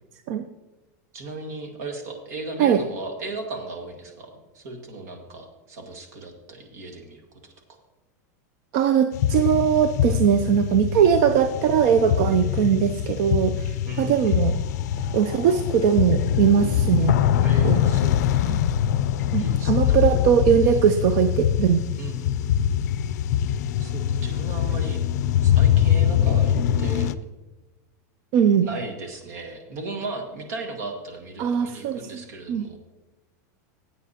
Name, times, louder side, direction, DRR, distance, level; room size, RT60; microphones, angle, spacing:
voice 1, 1.1-7.4 13.9-14.5 17.4-18.6 19.4-20.1 20.6-20.8 22.0-22.8 23.8-25.0 25.4-27.1 28.6-32.8, right 2 dB, 70° right, 3 dB, 1.9 m, -36 dB
voice 2, 8.7-14.5 15.1-17.2 17.6-17.8 18.5-18.6 19.3-21.8 28.3-28.7 31.4-32.2 32.5-32.6, right 8 dB, 45° right, 9 dB, 0.5 m, -20 dB
sound 1, 9.1-27.1, left 10 dB, 70° left, 0.4 m, -23 dB
15.0 x 8.4 x 2.9 m, 1.1 s
supercardioid pair, 160°, 9 cm